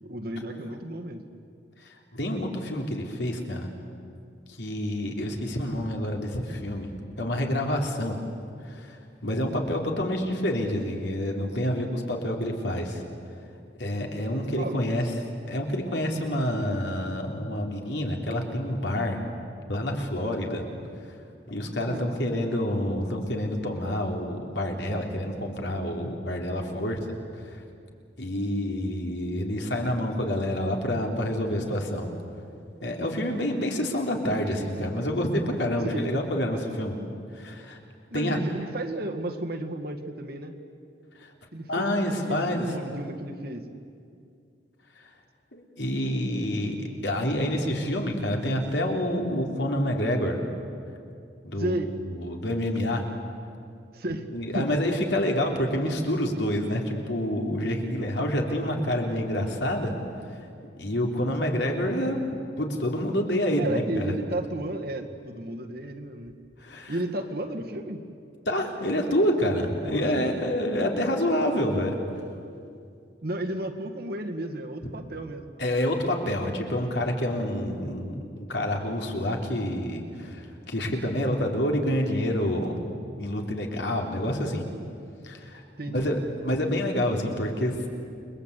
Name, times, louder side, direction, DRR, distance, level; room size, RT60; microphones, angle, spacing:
voice 1, 0.0-1.3 14.6-15.3 21.9-22.1 35.9-36.1 38.1-40.5 41.5-41.8 42.3-43.6 51.6-51.9 53.9-54.3 54.5-54.7 63.6-66.4 66.9-68.0 69.8-70.5 73.2-75.5 85.8-86.1, right 1 dB, 55° right, 4 dB, 2.0 m, -33 dB
voice 2, 2.1-3.7 4.5-6.9 7.2-8.2 8.6-13.0 13.8-15.1 15.5-19.2 19.7-20.6 21.5-27.1 28.2-32.1 32.8-36.9 37.3-37.8 38.1-38.4 41.2-41.3 41.7-42.7 45.5-50.4 51.4-51.8 52.1-53.1 54.3-59.9 60.8-64.2 66.6-67.0 68.5-72.2 75.6-84.6 85.2-87.8, left 1 dB, 70° left, 1 dB, 3.4 m, -28 dB
29.5 x 21.5 x 8.3 m, 2.4 s
head